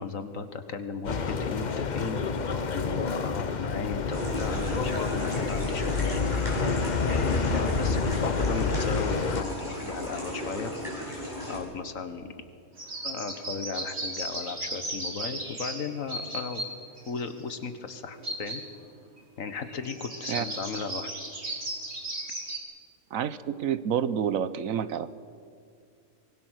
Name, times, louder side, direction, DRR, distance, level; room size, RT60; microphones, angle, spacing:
voice 1, 0.0-6.3 7.1-10.7 11.5-12.3 13.0-16.6 17.1-18.6 19.4-21.1, left 5 dB, 70° left, 9 dB, 1.8 m, -36 dB
sound 1, 1.0-9.4, left 5 dB, 40° left, 0.8 m, -29 dB
sound 2, 4.1-11.6, left 1 dB, 15° left, 7.8 m, -34 dB
sound 3, 12.8-16.7 17.0-17.5 18.2-18.8 19.2-19.3 19.5-22.6, right 1 dB, 50° right, 3.3 m, -36 dB
voice 2, 23.1-25.1, right 8 dB, 75° right, 14 dB, 1.2 m, -28 dB
24.5 x 20.5 x 6.4 m, 2.3 s
omnidirectional pair, 1.5 m